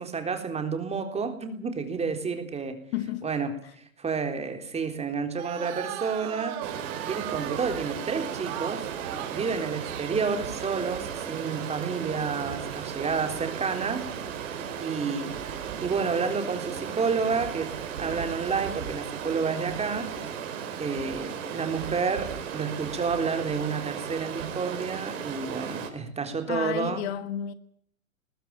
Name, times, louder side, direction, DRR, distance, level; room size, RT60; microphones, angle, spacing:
voice 1, 0.0-2.8 3.2-6.6 7.0-8.9 9.3-14.0 14.8-15.4 15.8-20.1 20.8-27.0, right 5 dB, 15° right, 3.7 m, -30 dB
voice 2, 2.9-3.3 26.5-27.5, left 11 dB, 50° left, 1.4 m, -31 dB
sound 1, 5.3-10.2, right 14 dB, 40° right, 2.5 m, -37 dB
Stream, 6.6-25.9, right 7 dB, 60° right, 4.9 m, -35 dB
21.0 x 14.5 x 9.1 m
hypercardioid pair, 110°, 41 cm